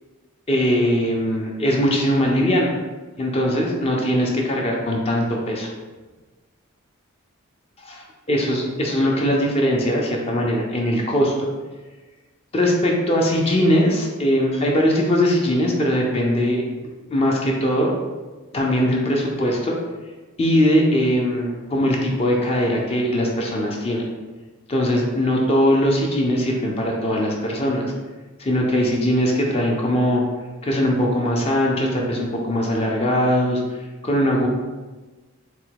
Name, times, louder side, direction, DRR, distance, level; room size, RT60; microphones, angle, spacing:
voice 1, 0.5-2.7 3.2-5.7 7.8-11.5 12.5-16.6 17.1-18.0 18.5-19.8 20.4-24.1 24.7-27.9 28.4-30.2 30.6-33.6 34.0-34.5, equal, 30° left, -1 dB, 0.5 m, -20 dB
3.9 x 2.1 x 4.5 m, 1.3 s
head